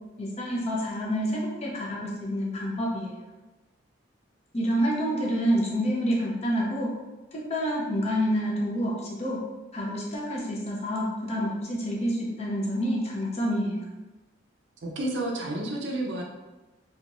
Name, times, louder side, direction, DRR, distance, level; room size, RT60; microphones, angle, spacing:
voice 1, 0.2-3.1 4.5-6.9 7.3-8.9 9.2-9.4 9.7-13.9, equal, 35° left, -3 dB, 0.7 m, -28 dB
voice 2, 14.8-16.2, right 1 dB, 65° right, 0 dB, 0.5 m, -30 dB
3.4 x 2.8 x 2.5 m, 1.2 s
head